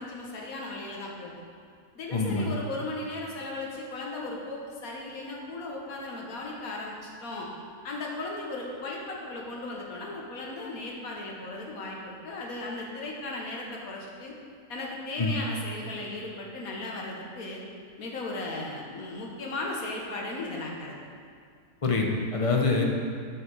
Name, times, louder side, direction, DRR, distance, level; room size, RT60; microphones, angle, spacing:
voice 1, 0.0-1.3 2.0-7.5 7.8-14.3 14.7-17.6 18.0-21.0, left 2 dB, 65° left, -1 dB, 1.7 m, -36 dB
voice 2, 2.1-2.4 15.2-15.3 21.8-22.8, left 3 dB, 30° left, 0 dB, 0.7 m, -25 dB
7.9 x 5.9 x 6.2 m, 2.3 s
omnidirectional pair, 1.6 m